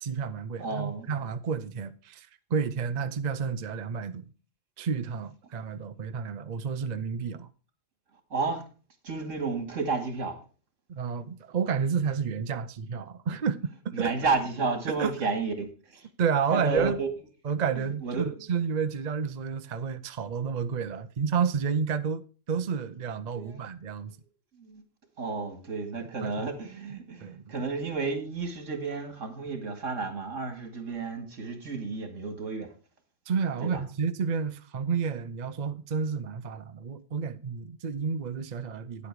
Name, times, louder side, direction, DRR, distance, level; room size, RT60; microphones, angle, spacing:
voice 1, 0.0-4.3 4.8-7.5 10.9-14.1 15.0-15.3 16.2-17.0 17.4-24.1 26.0-26.5 27.2-27.5 33.3-39.1, right 6 dB, 45° right, 0.7 m, -30 dB
voice 2, 0.6-1.1 8.3-8.6 9.0-10.4 13.9-16.1 16.5-17.1 18.0-18.2 23.4-23.6 24.6-24.8 25.2-32.7 33.6-33.8, right 4 dB, 80° right, 2.4 m, -31 dB
10.0 x 8.4 x 4.8 m
omnidirectional pair, 1.3 m